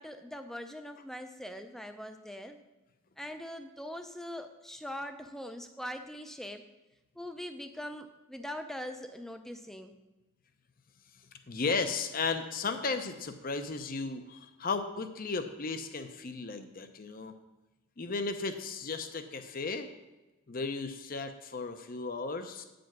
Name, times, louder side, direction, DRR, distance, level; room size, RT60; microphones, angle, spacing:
voice 1, 0.0-2.6 3.2-6.6 7.2-9.9, equal, ahead, 7 dB, 0.4 m, -42 dB
voice 2, 11.5-17.3 18.0-19.9 20.5-22.6, left 4 dB, 40° left, 9 dB, 0.6 m, -35 dB
9.1 x 5.2 x 6.0 m, 1.1 s
head